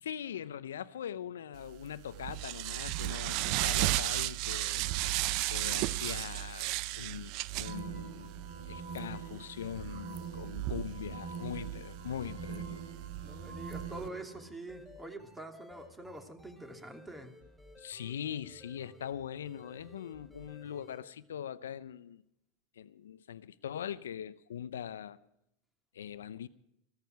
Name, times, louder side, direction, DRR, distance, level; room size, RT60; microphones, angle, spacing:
voice 1, 0.0-4.9 5.4-6.7 6.9-12.8 17.8-22.2 22.8-25.2 25.9-26.5, left 9 dB, 80° left, 0.6 m, -42 dB
sound 1, 1.7-14.1, right 17 dB, 55° right, 0.6 m, -35 dB
sound 2, 7.6-14.4, right 5 dB, 85° right, 4.5 m, -44 dB
voice 2, 13.2-17.3, right 2 dB, 10° right, 2.9 m, -45 dB
sound 3, 13.9-21.0, left 1 dB, 5° left, 6.1 m, -56 dB
15.5 x 14.5 x 4.7 m
hypercardioid pair, 90°, 0 cm